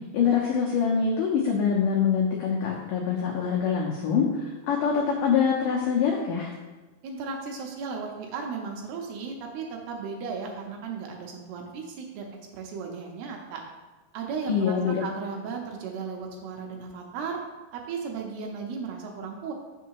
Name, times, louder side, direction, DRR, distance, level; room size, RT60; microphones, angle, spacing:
voice 1, 0.1-6.5 14.5-15.0, left 6 dB, 85° left, -2 dB, 1.9 m, -24 dB
voice 2, 7.0-12.3 12.5-13.6 14.1-17.4 17.7-19.5, right 5 dB, 75° right, 1 dB, 2.6 m, -35 dB
6.4 x 5.9 x 4.6 m, 1.2 s
omnidirectional pair, 5.0 m